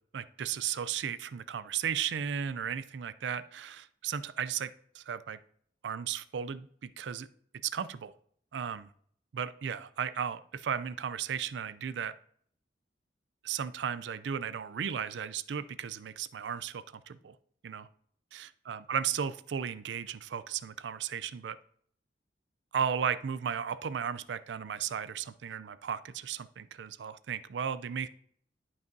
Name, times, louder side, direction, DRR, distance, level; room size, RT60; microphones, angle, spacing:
voice 1, 0.1-5.4 5.8-7.3 7.6-8.1 8.5-8.9 9.3-12.1 13.4-17.4 17.6-17.9 18.3-21.6 22.7-28.1, right 7 dB, 80° right, 15 dB, 0.4 m, -35 dB
11.5 x 5.4 x 2.7 m, 0.62 s
head